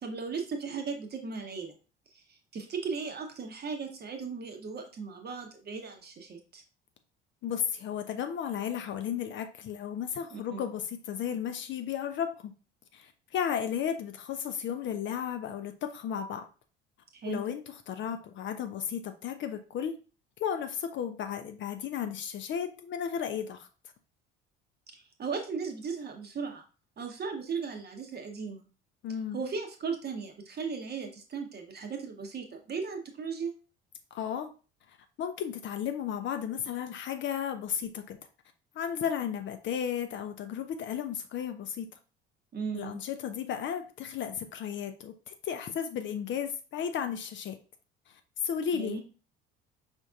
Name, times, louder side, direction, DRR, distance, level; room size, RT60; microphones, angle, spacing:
voice 1, 0.0-1.7 2.1-6.6 10.3-10.6 17.1-17.4 24.9-26.6 27.0-28.6 29.3-33.5 42.5-43.0 48.7-49.0, right 5 dB, 35° right, 4 dB, 0.8 m, -37 dB
voice 2, 7.4-12.5 12.9-16.5 17.2-20.0 20.4-23.7 29.0-29.4 34.1-34.5 35.2-38.2 38.7-41.9 42.7-47.6 48.1-49.0, left 8 dB, 40° left, 8 dB, 0.4 m, -34 dB
5.0 x 2.6 x 2.3 m, 0.35 s
figure-of-eight pair, 55°, 30 cm